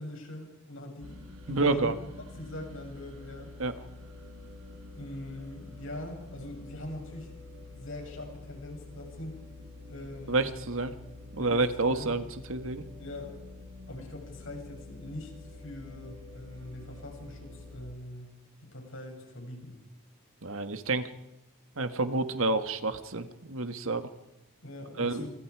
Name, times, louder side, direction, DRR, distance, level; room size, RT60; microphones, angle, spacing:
voice 1, 0.0-1.9 2.4-3.5 4.9-7.3 7.7-9.4 9.9-10.5 11.4-12.1 13.0-13.4 13.9-18.3 18.6-19.8 24.6-25.3, left 1 dB, 60° left, 2 dB, 7.4 m, -42 dB
sound 1, 1.0-17.9, left 2 dB, 90° right, 4.4 m, -47 dB
voice 2, 1.5-1.9 3.6-3.7 10.3-10.9 11.3-12.8 20.4-21.1 21.8-24.1 25.0-25.3, right 3 dB, 70° right, 9 dB, 1.7 m, -29 dB
27.5 x 26.5 x 4.9 m, 0.94 s
head